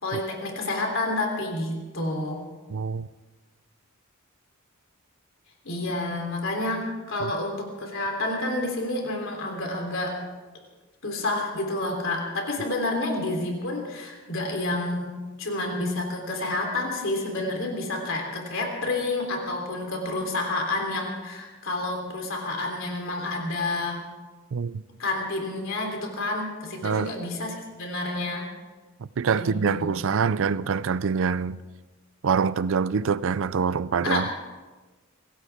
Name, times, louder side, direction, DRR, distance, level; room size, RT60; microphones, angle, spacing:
voice 1, 0.0-2.4 5.6-10.1 11.0-24.0 25.0-28.5 29.3-29.9 34.0-34.3, left 2 dB, 65° left, 3.4 m, -29 dB
voice 2, 2.7-3.1 7.2-7.3 24.5-24.8 26.8-27.1 29.2-31.6 32.2-34.3, right 6 dB, 65° right, 0.5 m, -25 dB
25.5 x 16.0 x 3.6 m
head